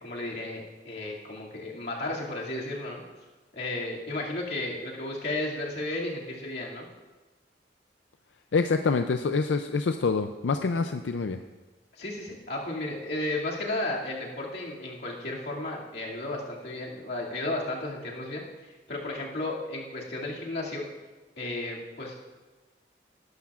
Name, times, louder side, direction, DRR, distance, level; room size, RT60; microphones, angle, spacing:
voice 1, 0.0-3.0 3.5-6.9 11.9-20.8 21.4-22.2, left 2 dB, 60° left, -3 dB, 2.4 m, -34 dB
voice 2, 8.5-11.4, left 4 dB, 90° left, 8 dB, 0.5 m, -26 dB
18.5 x 12.0 x 2.4 m, 1.2 s
head